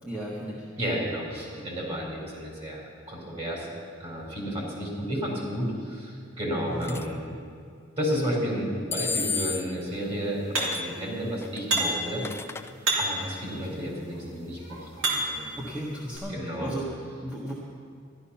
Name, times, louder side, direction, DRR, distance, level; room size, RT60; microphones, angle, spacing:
voice 1, 0.0-0.7 6.7-7.0 13.6-13.9 15.6-17.5, right 1 dB, 10° right, -6 dB, 1.5 m, -35 dB
voice 2, 0.8-3.7 4.0-7.2 8.0-12.2 13.0-15.7 16.3-16.7, equal, 30° right, -2 dB, 4.2 m, -32 dB
sound 1, 6.8-7.1 8.9-9.8 10.6-10.9 11.4-12.7, left 5 dB, 15° left, 0.4 m, -32 dB
sound 2, 10.5-11.0 11.7-12.1 12.8-13.3 14.1-15.5 16.1-16.2, right 2 dB, 85° right, 2.8 m, -28 dB
14.0 x 12.0 x 5.7 m, 2.3 s
head